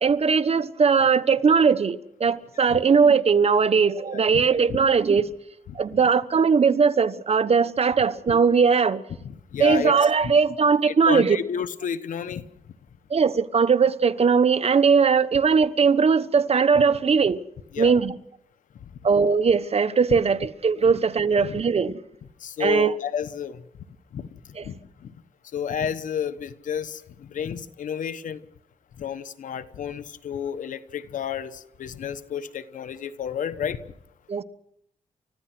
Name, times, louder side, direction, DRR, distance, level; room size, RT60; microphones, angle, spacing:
voice 1, 0.0-5.2 5.8-9.0 9.6-11.4 13.1-17.4 17.8-18.1 19.0-22.0 22.6-22.9 24.6-24.7 34.3-34.4, right 5 dB, 50° right, 1.1 m, -20 dB
voice 2, 5.7-6.0 9.2-10.1 10.9-12.4 17.7-18.0 20.1-20.2 21.3-21.6 22.4-23.6 24.1-24.3 24.6-24.8 25.5-28.4 29.0-33.8, left 8 dB, 90° left, 1.1 m, -31 dB
29.5 x 15.0 x 6.1 m
cardioid pair, 80°, 13 cm